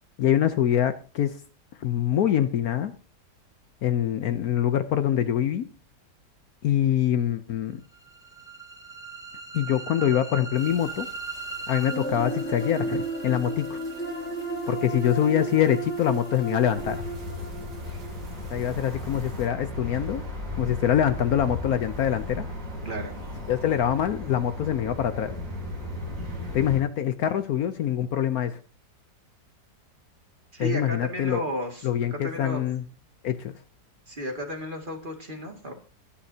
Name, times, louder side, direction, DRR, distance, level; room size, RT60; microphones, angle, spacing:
voice 1, 0.2-1.4 1.8-2.9 3.8-5.7 6.6-7.8 9.5-11.1 11.7-13.8 14.7-17.0 18.5-20.2 20.6-22.5 23.5-25.3 26.5-28.6 30.6-31.4 31.8-32.8 33.2-33.5, left 10 dB, 65° left, 11 dB, 1.1 m, -24 dB
sound 1, 8.1-20.1, right 2 dB, 5° left, 1.6 m, -35 dB
sound 2, 10.5-19.5, right 2 dB, 80° right, 3.3 m, -52 dB
sound 3, 16.7-26.8, left 2 dB, 50° right, 3.8 m, -35 dB
voice 2, 22.8-23.2 30.5-32.6 34.1-35.7, equal, 30° right, 2 dB, 2.3 m, -33 dB
21.0 x 10.0 x 2.8 m, 0.35 s
omnidirectional pair, 1.8 m